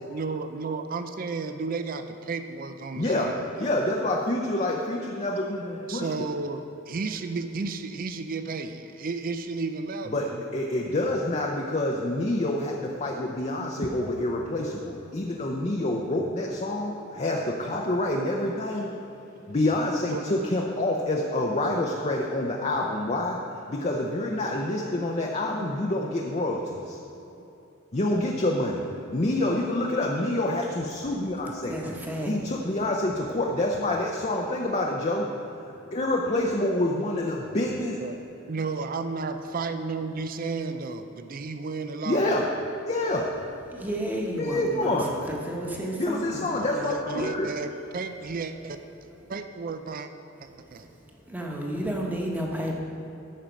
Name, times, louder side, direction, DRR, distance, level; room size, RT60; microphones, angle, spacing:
voice 1, 0.1-3.4 5.9-10.2 20.1-20.3 38.0-42.4 46.6-48.8 49.3-50.1 50.7-50.9, right 4 dB, 45° right, 9 dB, 0.4 m, -33 dB
voice 2, 2.9-6.3 10.1-18.9 19.5-23.4 23.7-27.0 27.9-28.8 29.1-31.8 32.3-35.3 35.9-38.0 42.0-42.5 42.8-43.3 44.3-45.1 46.0-47.5, left 1 dB, 35° left, -1 dB, 0.7 m, -27 dB
voice 3, 31.6-32.3 43.7-46.5 50.5-50.9 51.3-52.8, right 1 dB, 10° right, -1 dB, 1.2 m, -32 dB
13.5 x 5.7 x 5.2 m, 3.0 s
head